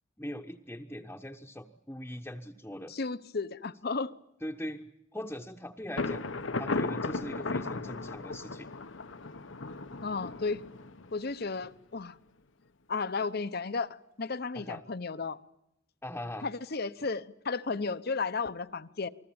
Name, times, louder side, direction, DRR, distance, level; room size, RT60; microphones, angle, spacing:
voice 1, 0.2-2.9 4.4-6.3 6.6-8.7 14.5-14.8 16.0-16.5, left 1 dB, 10° left, 1.1 m, -41 dB
voice 2, 2.9-4.1 10.0-10.6 11.1-12.2 12.9-15.4 16.4-19.1, left 4 dB, 55° left, 0.9 m, -34 dB
Thunder, 6.0-11.6, left 3 dB, 85° left, 1.2 m, -35 dB
28.5 x 21.0 x 8.8 m
head